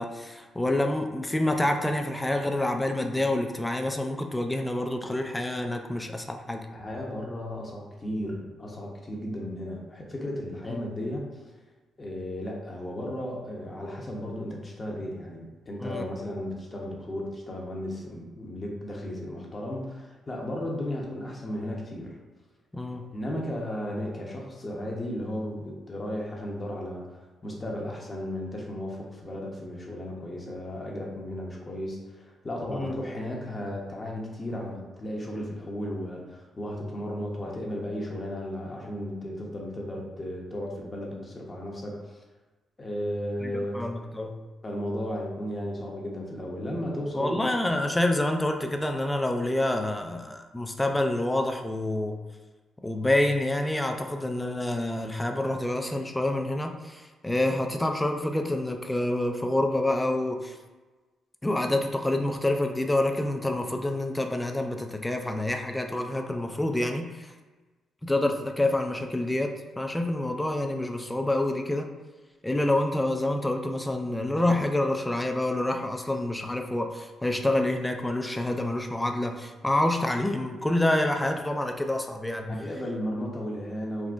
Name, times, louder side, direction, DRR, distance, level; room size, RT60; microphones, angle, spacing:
voice 1, 0.0-6.7 10.7-10.8 15.8-16.1 22.7-23.1 32.7-32.9 43.4-44.4 47.2-52.2 52.8-60.6 61.4-67.3 68.0-71.9 72.4-82.5, left 1 dB, 15° left, 4 dB, 0.3 m, -27 dB
voice 2, 6.7-11.4 12.0-22.2 23.1-42.2 42.8-43.9 44.6-47.4 82.5-84.1, left 1 dB, 30° left, -1 dB, 0.7 m, -34 dB
3.5 x 2.1 x 2.5 m, 1.3 s
supercardioid pair, 65°, 0 cm